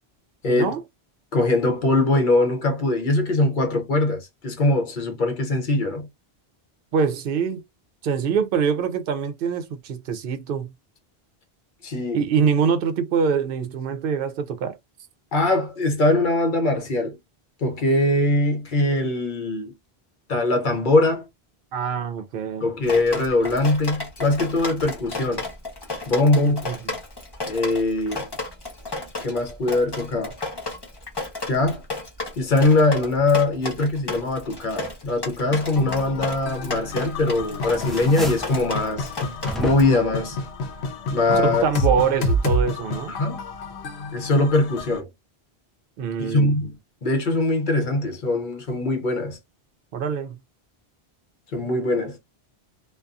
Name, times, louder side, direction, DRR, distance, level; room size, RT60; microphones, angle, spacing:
voice 1, 0.5-0.8 6.9-7.6 8.0-10.7 12.1-14.8 21.7-22.6 26.4-26.9 41.4-43.2 46.0-46.6 49.9-50.4, right 6 dB, 65° right, 0.7 m, -24 dB
voice 2, 1.3-6.1 11.8-12.2 15.3-17.2 17.6-19.7 20.3-21.3 22.6-25.5 26.1-26.7 27.5-28.3 29.2-30.4 31.5-31.8 32.4-39.1 39.6-40.4 41.1-41.6 43.1-43.4 44.1-45.1 46.2-46.7 47.0-49.4 51.5-52.2, left 2 dB, 55° left, 0.8 m, -22 dB
Drip, 22.8-39.8, left 2 dB, 25° left, 0.8 m, -33 dB
sound 1, 35.8-45.0, left 1 dB, 90° left, 0.9 m, -29 dB
sound 2, 36.9-37.3 37.6-38.6 39.5-40.1, right 1 dB, ahead, 0.3 m, -33 dB
2.6 x 2.3 x 2.3 m
omnidirectional pair, 1.1 m